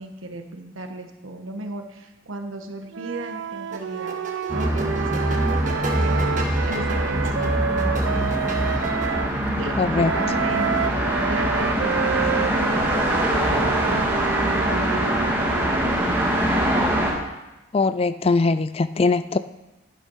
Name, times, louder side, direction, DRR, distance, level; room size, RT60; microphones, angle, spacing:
voice 1, 0.0-4.2 4.5-5.4 5.9-6.2 6.7-8.9 9.6-10.9 11.3-13.3 13.8-16.5, right 1 dB, 80° right, 5 dB, 1.3 m, -35 dB
Wind instrument woodwind instrument, 2.9-9.3 10.0-16.1, right 7 dB, 60° right, 0.4 m, -29 dB
sound 1, 3.7-9.4, right 1 dB, 40° right, 1.4 m, -34 dB
sound 2, 4.5-17.1, right 1 dB, 10° right, 2.0 m, -23 dB
voice 2, 9.8-10.1 17.7-19.4, left 3 dB, 30° left, 13 dB, 0.3 m, -21 dB
11.0 x 9.1 x 5.6 m, 1.0 s
head